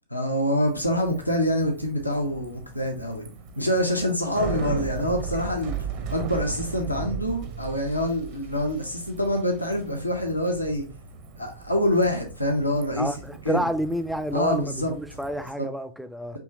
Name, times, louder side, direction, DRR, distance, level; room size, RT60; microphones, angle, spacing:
voice 1, 0.1-3.2 3.6-5.8 6.1-10.9 11.4-13.1 13.4-13.7 14.3-14.9 15.6-15.7, left 1 dB, 85° left, 0.6 m, -25 dB
Bicycle, 0.7-15.5, right 5 dB, 45° right, 0.6 m, -37 dB
voice 2, 13.0-16.4, equal, ahead, 0.4 m, -29 dB
4.6 x 3.0 x 2.5 m
figure-of-eight pair, 90°, 0 cm